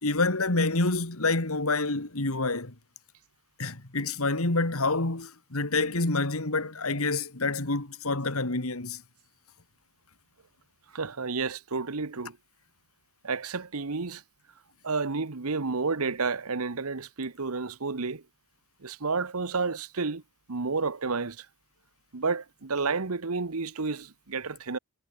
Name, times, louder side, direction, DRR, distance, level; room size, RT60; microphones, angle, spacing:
voice 1, 0.0-2.7 3.6-9.0, left 3 dB, 75° left, 2.6 m, -27 dB
voice 2, 10.9-12.4 13.2-14.2 14.8-18.2 18.8-20.2 20.5-21.4 22.1-24.8, right 4 dB, 85° right, 1.2 m, -30 dB
head